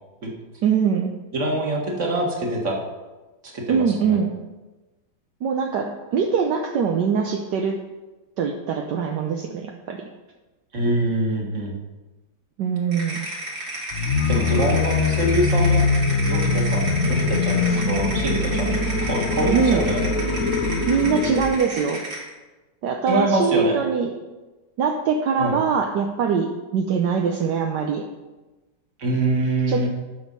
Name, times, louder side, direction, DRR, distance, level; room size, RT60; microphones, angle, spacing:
voice 1, 0.6-1.1 3.7-4.3 5.4-7.8 8.4-10.1 12.6-13.2 14.7-14.8 17.7-18.0 19.5-19.9 20.9-22.0 22.8-24.1 24.8-28.0 29.7-29.9, right 6 dB, 70° right, 2 dB, 1.3 m, -23 dB
voice 2, 1.3-2.8 3.4-4.2 10.7-11.7 14.0-15.8 16.3-18.7 19.0-20.0 23.1-23.8 25.4-25.6 29.0-29.9, right 2 dB, 40° right, -1 dB, 2.1 m, -24 dB
sound 1, 12.9-22.3, right 1 dB, 85° right, 3.7 m, -32 dB
sound 2, 13.9-21.6, left 4 dB, 55° left, 1.0 m, -22 dB
11.5 x 6.3 x 5.4 m, 1.2 s
omnidirectional pair, 2.0 m